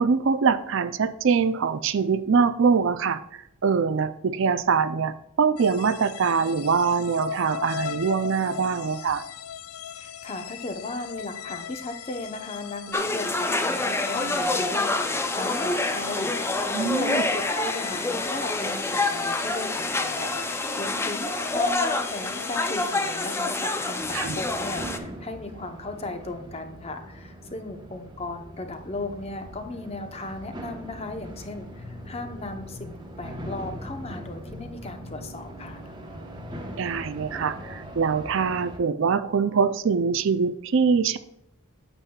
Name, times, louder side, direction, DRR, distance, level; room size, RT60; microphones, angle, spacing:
voice 1, 0.0-9.2 16.7-17.3 24.1-24.4 36.8-41.2, right 5 dB, 60° right, 13 dB, 0.4 m, -23 dB
sound 1, 5.6-23.5, left 9 dB, 90° left, 0.4 m, -39 dB
voice 2, 10.0-35.8, left 2 dB, 30° left, 6 dB, 0.9 m, -36 dB
sound 2, 12.9-25.0, left 2 dB, 10° left, 0.4 m, -27 dB
sound 3, 24.0-38.8, equal, 20° right, 1.1 m, -40 dB
8.9 x 8.1 x 2.3 m, 0.80 s
head